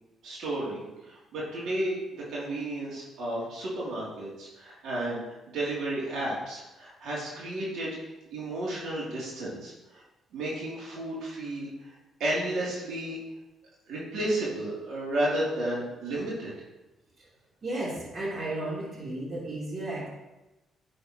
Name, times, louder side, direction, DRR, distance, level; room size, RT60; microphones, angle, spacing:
voice 1, 0.2-5.2 5.5-8.0 8.3-10.0 10.3-11.9 12.2-13.2 13.9-16.5, right 1 dB, 75° right, -6 dB, 2.8 m, -32 dB
voice 2, 17.6-20.1, right 1 dB, 40° right, -5 dB, 3.0 m, -34 dB
10.0 x 7.0 x 3.0 m, 1.0 s
cardioid pair, 90°, 0 cm